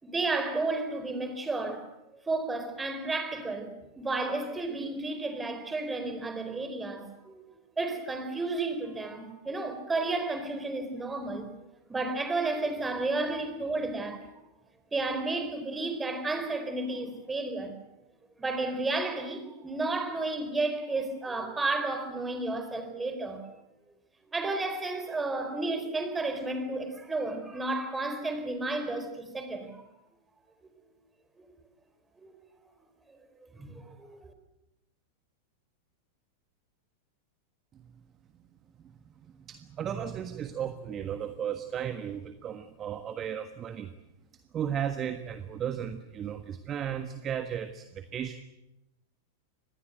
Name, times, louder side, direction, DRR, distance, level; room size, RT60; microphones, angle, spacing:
voice 1, 0.0-1.8 2.3-7.4 7.8-11.5 11.9-14.3 14.9-17.8 18.4-23.4 24.3-29.8 32.2-32.3 33.5-34.3, right 2 dB, 15° right, 4.4 m, -32 dB
voice 2, 39.5-43.9 44.5-48.4, right 9 dB, 30° right, 1.4 m, -35 dB
25.5 x 20.0 x 8.0 m
figure-of-eight pair, 95°, 0 cm